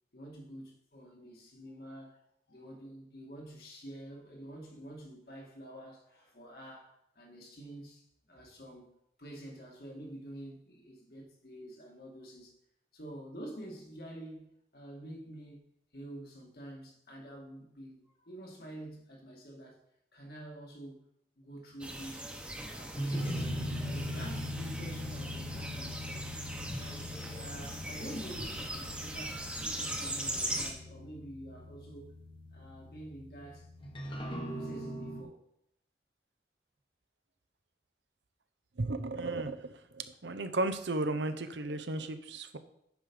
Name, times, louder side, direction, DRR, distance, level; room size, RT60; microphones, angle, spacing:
voice 1, 0.1-2.2 2.5-8.9 9.2-12.5 12.9-15.7 15.9-19.8 20.1-21.1 21.4-22.3 22.6-32.1 32.5-33.7 34.1-35.4, right 1 dB, 60° left, 1.9 m, -48 dB
sound 1, 21.8-30.7, right 1 dB, 5° right, 1.0 m, -40 dB
sound 2, 22.7-35.2, equal, 30° left, 1.1 m, -41 dB
voice 2, 38.8-42.6, right 2 dB, 90° right, 0.8 m, -34 dB
9.2 x 5.0 x 5.4 m
head